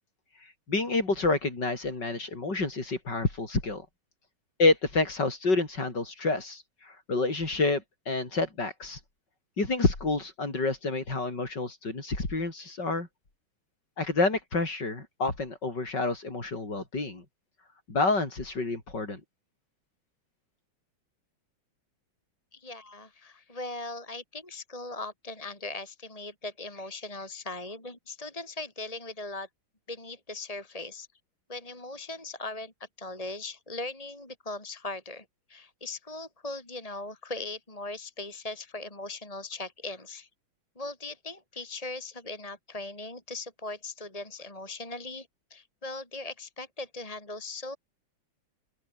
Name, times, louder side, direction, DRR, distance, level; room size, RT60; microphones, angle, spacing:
voice 1, 0.7-3.8 4.6-6.6 7.1-9.0 9.6-13.1 14.0-17.2 17.9-19.2, left 3 dB, 55° left, 6.2 m, -28 dB
voice 2, 22.5-29.5 29.9-31.1 31.5-32.7 33.0-40.3 40.8-47.8, left 2 dB, 15° left, 4.0 m, -39 dB
open air
omnidirectional pair, 2.2 m